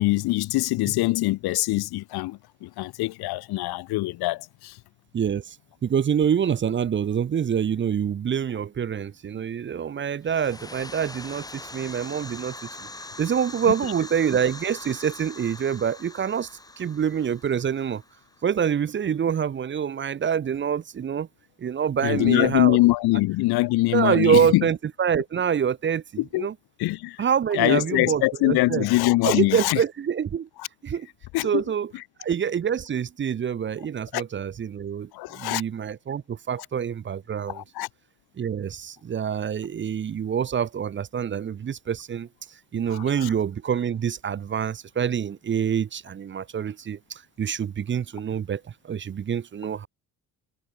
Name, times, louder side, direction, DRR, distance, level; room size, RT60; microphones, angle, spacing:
voice 1, 0.0-4.7 22.0-24.7 26.2-26.5 26.8-27.2 27.5-29.8 30.6-30.7 31.3-31.6 31.9-32.0 34.1-34.2 35.1-35.6 37.5-37.9 42.9-43.3, left 19 dB, 70° left, 0.5 m, -23 dB
voice 2, 5.1-5.6 5.8-12.9 13.2-16.5 16.8-18.0 18.4-21.3 21.6-22.8 23.9-26.0 26.3-26.5 27.2-28.9 29.2-30.5 30.8-31.1 31.4-31.9 32.2-37.6 38.4-42.3 42.7-49.9, right 8 dB, 30° right, 0.6 m, -26 dB
sound 1, 10.2-18.8, left 2 dB, 10° left, 1.8 m, -42 dB
cardioid pair, 130°, 40 cm